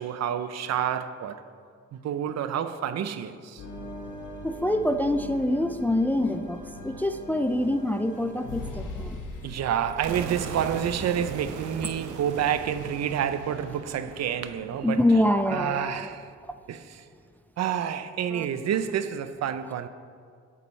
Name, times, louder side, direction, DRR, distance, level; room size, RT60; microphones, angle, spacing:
voice 1, 0.0-1.4 1.9-3.6 9.4-15.0 15.5-16.3 16.7-17.1 17.6-19.9, right 9 dB, 60° right, 0.6 m, -29 dB
sound 1, 3.6-13.0, left 1 dB, 80° left, 1.2 m, -41 dB
voice 2, 4.4-9.2 14.8-16.1 18.3-18.5, left 1 dB, 5° left, 0.3 m, -25 dB
sound 2, 10.0-15.9, right 5 dB, 80° right, 0.9 m, -39 dB
12.0 x 7.9 x 3.2 m
cardioid pair, 90°, 30 cm